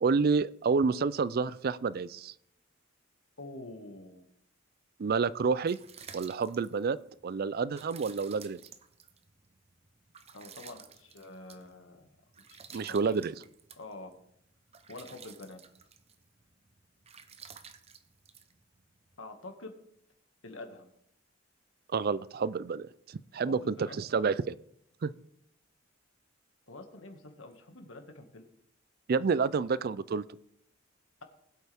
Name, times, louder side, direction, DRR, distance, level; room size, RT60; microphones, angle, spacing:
voice 1, 0.0-2.3 5.0-5.8 6.1-7.0 7.2-8.6 12.7-13.3 21.9-24.6 25.0-25.1 29.1-30.2, right 5 dB, 50° right, 18 dB, 0.4 m, -29 dB
voice 2, 3.4-4.3 10.3-12.1 12.5-13.1 13.8-14.1 14.9-15.6 19.2-19.7 20.4-20.9 23.4-24.0 26.7-28.4, left 2 dB, 85° left, 4 dB, 1.9 m, -47 dB
sound 1, 5.4-19.2, right 7 dB, 30° right, 0.8 m, -53 dB
20.5 x 8.2 x 3.5 m, 0.73 s
head